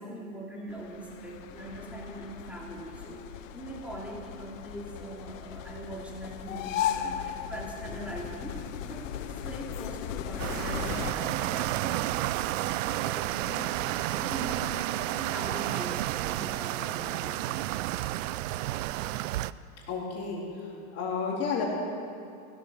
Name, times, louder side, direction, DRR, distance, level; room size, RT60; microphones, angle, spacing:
voice 1, 0.0-14.7 15.1-16.0 16.3-17.4, right 1 dB, 5° right, -3 dB, 3.1 m, -41 dB
sound 1, 0.7-11.1, left 10 dB, 65° left, 1.0 m, -37 dB
sound 2, 10.4-19.5, right 15 dB, 60° right, 0.5 m, -31 dB
voice 2, 19.9-21.6, left 5 dB, 35° left, -2 dB, 3.8 m, -32 dB
16.0 x 12.0 x 6.9 m, 2.5 s
hypercardioid pair, 130°, 43 cm